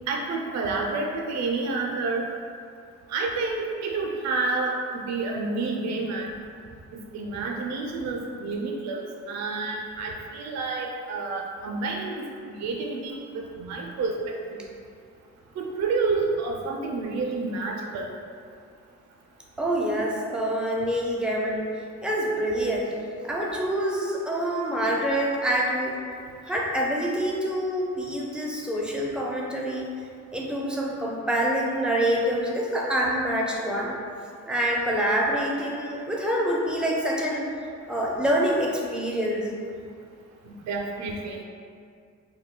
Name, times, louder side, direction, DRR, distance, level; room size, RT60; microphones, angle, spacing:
voice 1, 0.1-2.2 3.1-6.3 7.1-14.3 15.6-18.1 40.5-41.4, right 3 dB, 60° right, 0 dB, 0.4 m, -29 dB
voice 2, 19.6-21.7 22.0-22.9 23.2-25.9 26.5-29.9 30.3-33.9 34.5-39.5, right 1 dB, 5° right, -3 dB, 0.4 m, -26 dB
2.2 x 2.1 x 3.6 m, 2.3 s
cardioid pair, 90°, 30 cm